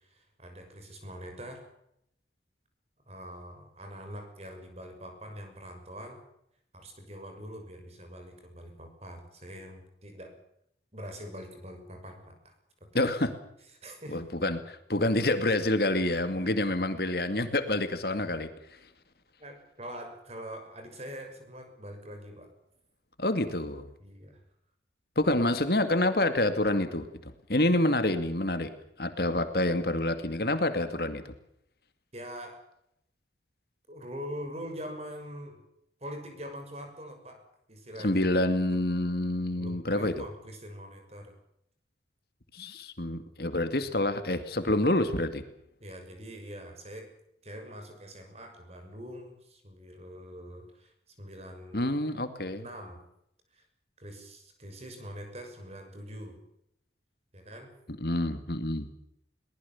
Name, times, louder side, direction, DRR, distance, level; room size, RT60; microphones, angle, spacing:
voice 1, 0.0-1.7 3.1-6.2 6.7-10.4 10.9-12.5 12.8-13.0 13.8-14.2 16.4-16.5 19.4-22.5 24.0-24.4 32.1-32.6 33.9-35.6 36.0-38.2 38.7-38.8 39.5-41.3 43.8-43.9 45.8-47.1 47.4-51.9 52.5-53.0 53.5-53.6 54.0-56.4 57.3-57.7, equal, 35° right, 5 dB, 6.4 m, -44 dB
voice 2, 12.9-13.3 14.1-18.8 23.2-23.8 25.2-28.7 29.0-31.2 38.0-40.1 42.5-45.4 51.7-52.6 58.0-58.9, left 1 dB, 55° left, 9 dB, 2.3 m, -27 dB
22.5 x 20.0 x 7.3 m, 0.76 s
head